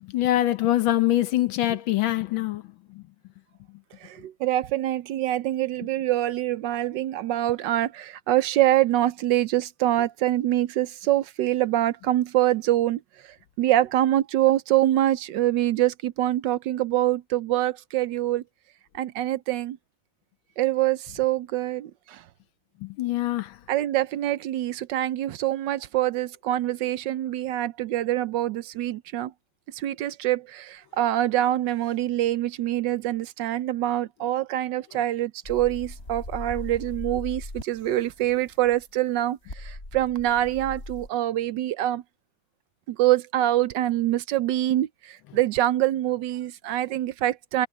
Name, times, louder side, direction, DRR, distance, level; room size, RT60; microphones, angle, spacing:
voice 1, 0.0-2.6 2.9-3.0 22.8-23.6, left 14 dB, 85° left, 1.7 m, -24 dB
voice 2, 4.0-18.4 18.9-19.8 20.6-22.2 23.7-29.3 29.7-42.0 42.9-47.7, right 13 dB, 75° right, 1.2 m, -25 dB
sound 1, 35.4-38.8 39.5-41.1, left 1 dB, 30° left, 6.0 m, -39 dB
omnidirectional pair, 2.1 m